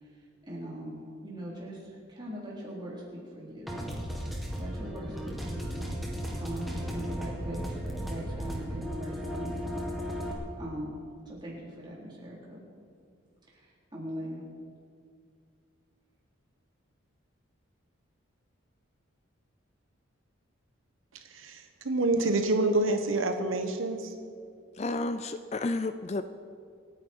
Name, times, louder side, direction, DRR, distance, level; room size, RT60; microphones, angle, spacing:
voice 1, 0.0-3.7 4.6-6.0 6.4-9.8 10.0-10.2 10.6-11.0 11.3-12.6 13.5-14.4, equal, 20° right, -5 dB, 3.9 m, -41 dB
sound 1, 3.7-10.3, equal, ahead, 1.9 m, -35 dB
voice 2, 21.1-24.1, right 2 dB, 75° right, 6 dB, 1.1 m, -27 dB
voice 3, 24.8-26.2, left 2 dB, 30° left, 10 dB, 0.4 m, -31 dB
26.5 x 10.0 x 4.6 m, 2.2 s
head